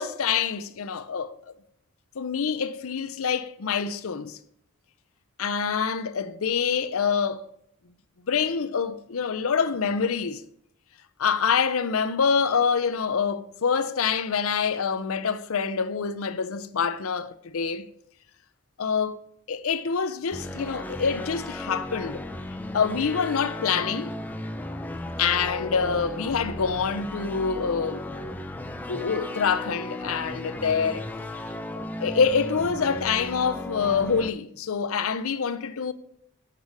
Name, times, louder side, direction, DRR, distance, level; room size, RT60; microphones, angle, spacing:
voice 1, 0.0-1.5 2.2-4.4 5.4-7.5 8.3-10.4 11.2-17.9 18.8-19.2 19.5-22.2 22.7-24.1 25.2-28.3 28.9-31.1 32.0-35.9, left 6 dB, 75° left, 0.6 m, -26 dB
sound 1, 20.3-34.3, left 1 dB, 10° left, 0.4 m, -35 dB
8.1 x 6.7 x 4.9 m
head